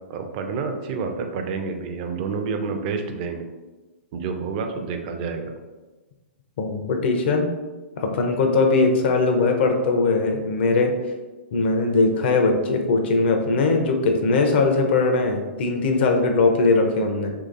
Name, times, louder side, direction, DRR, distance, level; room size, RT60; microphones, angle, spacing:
voice 1, 0.1-3.4 4.1-5.5, right 5 dB, 45° right, 5 dB, 0.4 m, -29 dB
voice 2, 6.6-7.5 8.0-10.9 11.5-17.3, left 3 dB, 60° left, 4 dB, 0.5 m, -20 dB
3.0 x 2.8 x 2.5 m, 1.2 s
hypercardioid pair, 125°, 7 cm